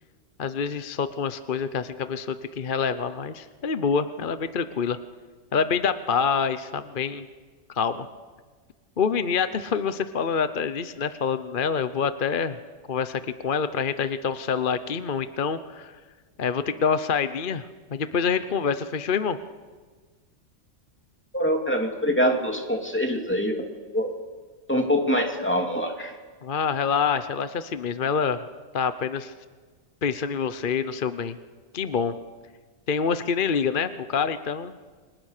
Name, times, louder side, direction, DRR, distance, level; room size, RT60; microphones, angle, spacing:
voice 1, 0.4-5.0 5.5-7.3 7.7-8.1 9.0-12.6 12.9-15.9 16.4-19.4 26.4-28.4 28.7-29.3 30.0-31.4 31.7-32.1 32.9-34.7, left 6 dB, 45° left, 11 dB, 1.0 m, -26 dB
voice 2, 21.3-23.7 23.9-24.2 24.7-26.2, equal, 10° left, 3 dB, 2.8 m, -24 dB
29.5 x 25.5 x 6.7 m, 1.4 s
omnidirectional pair, 1.3 m